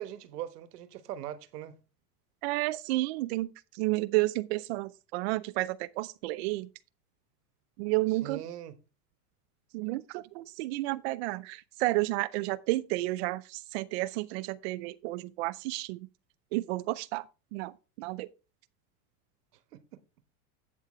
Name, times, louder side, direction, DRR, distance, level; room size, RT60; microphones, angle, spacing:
voice 1, 0.0-1.8 8.1-8.8 19.7-19.8, right 11 dB, 80° right, 1.4 m, -40 dB
voice 2, 2.4-6.7 7.8-8.4 9.7-16.0 16.5-17.2 17.5-17.7 18.0-18.3, right 20 dB, 45° right, 0.5 m, -31 dB
11.0 x 8.3 x 3.1 m
supercardioid pair, 150°, 46 cm